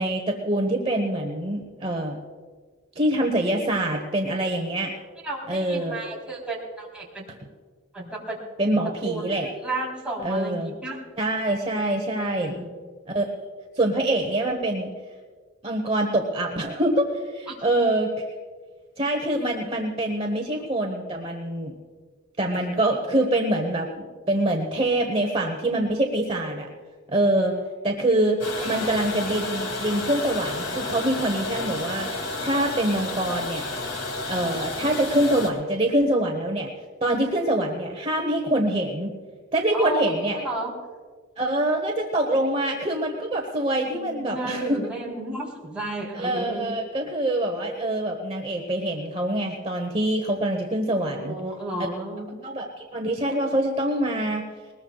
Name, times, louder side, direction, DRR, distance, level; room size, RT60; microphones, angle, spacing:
voice 1, 0.0-2.2 3.0-4.9 5.5-6.0 8.6-9.5 10.2-10.7 11.2-12.5 13.1-13.2 13.8-14.9 15.6-18.2 19.0-21.7 22.4-26.7 27.1-27.6 27.8-28.4 28.6-32.1 32.4-33.7 34.2-36.7 37.0-39.1 39.5-40.4 41.4-44.8 46.1-51.4 52.4-54.4, right 1 dB, 25° right, 2 dB, 1.1 m, -25 dB
voice 2, 5.2-7.3 7.9-8.4 9.0-9.3 9.6-11.0 12.4-12.7 17.5-17.6 28.6-28.8 39.7-40.7 43.8-46.7 51.0-52.3, right 2 dB, 5° right, -5 dB, 3.6 m, -33 dB
sound 1, 28.4-35.5, left 2 dB, 70° left, 2.6 m, -31 dB
20.5 x 20.5 x 2.4 m, 1.5 s
head